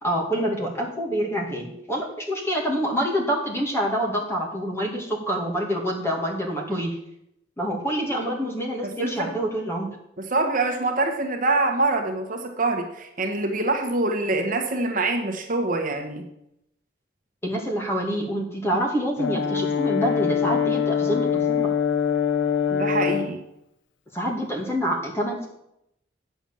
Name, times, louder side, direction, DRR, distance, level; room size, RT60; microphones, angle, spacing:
voice 1, 0.0-7.0 7.6-9.9 17.4-21.7 24.1-25.5, equal, 15° left, 0 dB, 2.1 m, -26 dB
voice 2, 8.8-9.3 10.2-16.3 22.7-23.4, right 2 dB, 45° right, 4 dB, 1.4 m, -25 dB
Brass instrument, 19.2-23.3, left 7 dB, 90° left, 0.8 m, -23 dB
9.1 x 7.1 x 7.0 m, 0.80 s
head